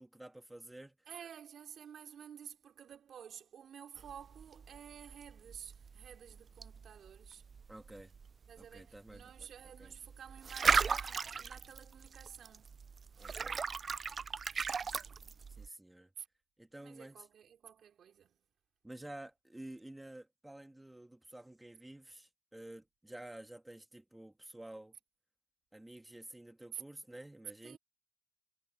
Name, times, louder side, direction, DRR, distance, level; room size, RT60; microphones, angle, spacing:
voice 1, 0.0-1.0 7.7-8.1 8.6-9.5 9.8-9.9 13.2-13.6 15.6-16.1 16.6-17.3 18.8-24.9 25.7-27.8, right 1 dB, 10° right, 1.7 m, -51 dB
voice 2, 1.1-7.5 8.5-12.8 14.8-15.4 16.2-16.3 16.8-18.4 26.7-26.8 27.5-27.8, right 8 dB, 60° right, 4.1 m, -52 dB
sound 1, 4.0-15.7, right 5 dB, 40° right, 0.3 m, -37 dB
cardioid pair, 90°, 0 cm